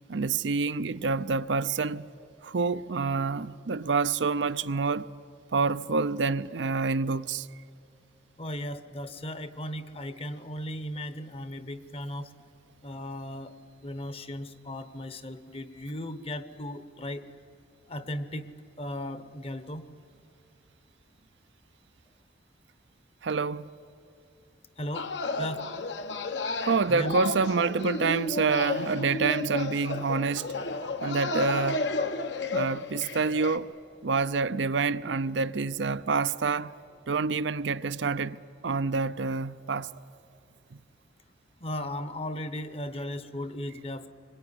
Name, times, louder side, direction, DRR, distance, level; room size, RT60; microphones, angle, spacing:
voice 1, 0.1-2.1 2.4-5.1 5.5-7.5 23.2-23.7 26.6-30.6 31.0-31.9 32.5-33.7 34.0-36.7 37.1-39.9 40.7-40.8, right 4 dB, 75° right, 0.6 m, -27 dB
voice 2, 8.4-12.3 12.8-13.6 13.8-17.3 17.9-18.5 18.8-19.9 24.8-25.1 25.4-25.7 26.9-27.1 41.6-44.1, left 1 dB, 30° left, 1.0 m, -36 dB
sound 1, 24.9-33.6, left 2 dB, 70° left, 1.3 m, -32 dB
25.5 x 22.5 x 9.8 m
head